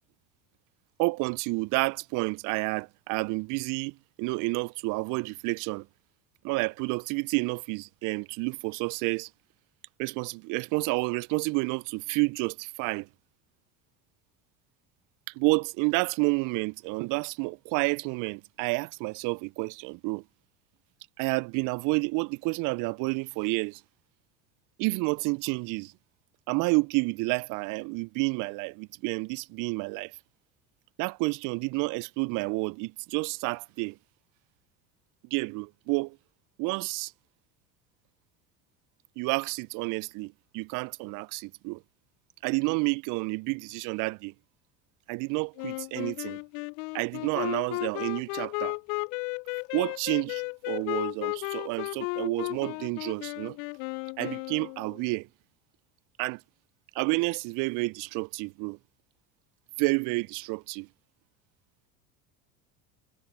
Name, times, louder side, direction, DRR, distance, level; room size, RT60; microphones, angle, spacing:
voice 1, 1.0-5.9 6.4-9.3 10.0-13.1 15.3-20.2 21.2-23.8 24.8-25.9 26.5-30.1 31.0-34.0 35.3-36.2 36.6-37.1 39.2-41.8 42.4-44.3 45.1-46.4 46.9-48.8 49.7-53.6 54.2-55.3 56.2-56.4 56.9-58.8 59.8-60.9, right 27 dB, 45° right, 0.4 m, -30 dB
Wind instrument woodwind instrument, 45.6-55.0, left 32 dB, 60° left, 0.5 m, -34 dB
hypercardioid pair, 80°, 45 cm